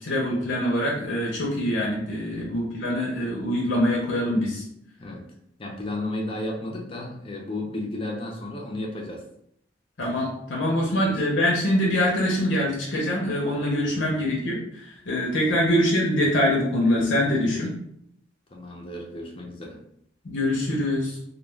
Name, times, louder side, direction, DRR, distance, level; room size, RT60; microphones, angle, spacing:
voice 1, 0.0-4.6 10.0-17.7 20.2-21.2, left 1 dB, 80° left, -3 dB, 0.6 m, -24 dB
voice 2, 5.6-9.2 10.8-11.2 13.9-14.1 15.5-15.7 18.5-19.8, left 1 dB, 30° left, 0 dB, 0.5 m, -34 dB
2.2 x 2.2 x 3.2 m, 0.73 s
head